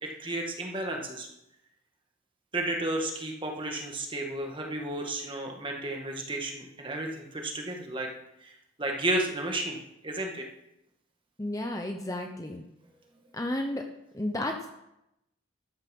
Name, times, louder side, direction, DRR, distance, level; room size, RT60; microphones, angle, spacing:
voice 1, 0.0-1.3 2.5-8.1 8.4-8.5 8.8-9.8 10.0-10.5, right 1 dB, 25° right, 1 dB, 2.0 m, -32 dB
voice 2, 11.4-12.6 13.3-13.9 14.1-14.7, left 1 dB, 15° left, 4 dB, 0.9 m, -32 dB
13.5 x 9.8 x 5.5 m, 0.85 s
head